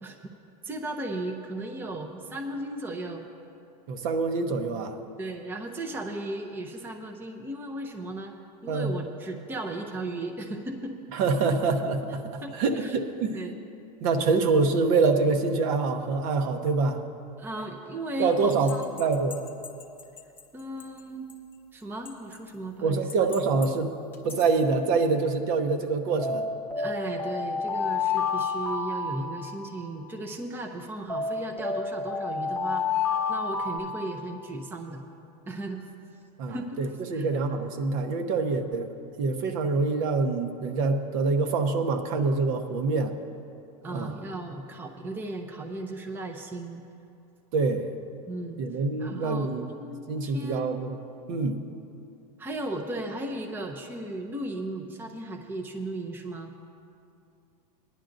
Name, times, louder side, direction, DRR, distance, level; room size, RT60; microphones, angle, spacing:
voice 1, 0.6-3.2 5.2-8.3 8.6-11.0 11.4-11.6 12.4-13.0 13.3-13.5 17.4-18.9 20.5-21.3 21.7-23.1 26.7-35.1 35.5-35.9 36.5-36.8 37.1-37.3 43.8-46.8 48.3-48.6 49.0-50.8 52.4-56.5, right 1 dB, 10° right, 2 dB, 0.6 m, -36 dB
voice 2, 3.9-5.0 8.7-8.9 11.1-13.4 14.0-17.0 18.2-18.7 19.0-19.4 22.8-24.0 24.2-26.5 36.4-38.9 39.2-43.1 43.9-44.1 47.5-47.9 48.6-49.7 50.1-51.0 51.3-51.6, right 4 dB, 55° right, 6 dB, 0.9 m, -25 dB
sound 1, 18.5-20.4 20.8-20.9 21.3-21.4 22.0-22.5 23.1-23.7 24.1-24.5 26.2-30.0 31.1-33.8, left 5 dB, 10° left, 1.1 m, -30 dB
19.0 x 10.5 x 2.6 m, 2.6 s
supercardioid pair, 140°, 21 cm